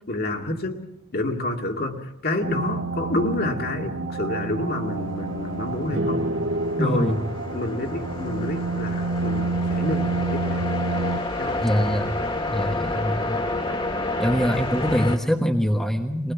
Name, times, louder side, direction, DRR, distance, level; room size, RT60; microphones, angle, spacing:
voice 1, 0.1-0.8 1.1-6.3 6.8-7.2 7.5-10.7 11.4-12.0, left 1 dB, 45° left, 3 dB, 2.2 m, -28 dB
sound 1, 2.4-11.2, right 3 dB, 85° right, 1.4 m, -29 dB
sound 2, 5.0-15.2, left 2 dB, 25° left, 2.0 m, -30 dB
sound 3, 5.9-9.5, right 1 dB, 65° right, 1.7 m, -31 dB
voice 2, 6.8-7.2 11.6-12.2 12.5-13.5 14.2-16.3, equal, ahead, 3 dB, 1.2 m, -23 dB
22.5 x 19.5 x 7.2 m, 0.86 s
head